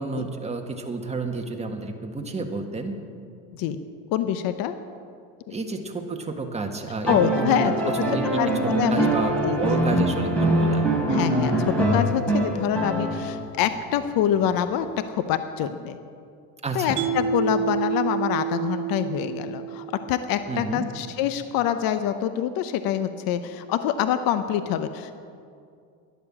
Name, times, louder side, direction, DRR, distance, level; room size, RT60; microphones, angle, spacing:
voice 1, 0.0-2.9 5.5-10.9 16.6-17.0 20.5-20.9, right 3 dB, 15° right, 3 dB, 1.7 m, -30 dB
voice 2, 4.1-4.7 5.5-5.6 7.1-7.7 8.4-9.1 9.4-9.8 11.1-16.0 16.7-25.2, left 10 dB, 65° left, 10 dB, 0.9 m, -25 dB
sound 1, 7.0-13.5 15.0-15.1, right 1 dB, 5° left, 3.4 m, -23 dB
Mallet percussion, 17.0-20.2, right 8 dB, 90° right, 0.8 m, -28 dB
12.0 x 10.5 x 7.5 m, 2.3 s
supercardioid pair, 90°, 38 cm